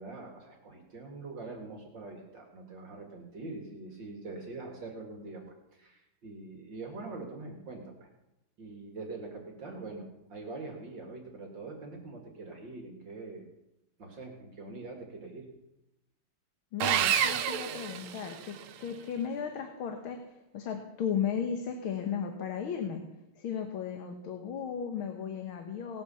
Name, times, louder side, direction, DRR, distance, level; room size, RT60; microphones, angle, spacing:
voice 1, 0.0-8.1 8.6-13.4 14.0-15.5, right 3 dB, 60° right, 1 dB, 2.8 m, -44 dB
voice 2, 16.7-23.0 23.4-26.0, left 7 dB, 80° left, 5 dB, 2.2 m, -35 dB
Sawing, 16.8-18.7, right 9 dB, 90° right, 1.7 m, -29 dB
18.5 x 9.4 x 7.0 m, 0.89 s
omnidirectional pair, 2.3 m